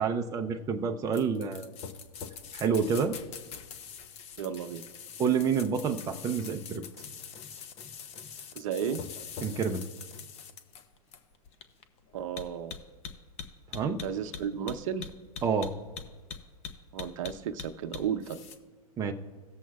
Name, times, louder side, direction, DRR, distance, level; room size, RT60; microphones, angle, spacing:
voice 1, 0.0-1.7 2.5-3.2 5.2-6.8 9.4-9.9 13.7-14.0 15.4-15.7 19.0-19.1, right 6 dB, 20° right, 4 dB, 0.5 m, -28 dB
sound 1, 1.1-18.6, left 7 dB, 35° left, 0.8 m, -43 dB
voice 2, 4.4-4.8 8.5-9.0 12.1-12.7 14.0-15.1 16.9-18.4, right 8 dB, 60° right, 9 dB, 0.7 m, -33 dB
18.0 x 7.2 x 2.3 m, 1.4 s
hypercardioid pair, 115°, 19 cm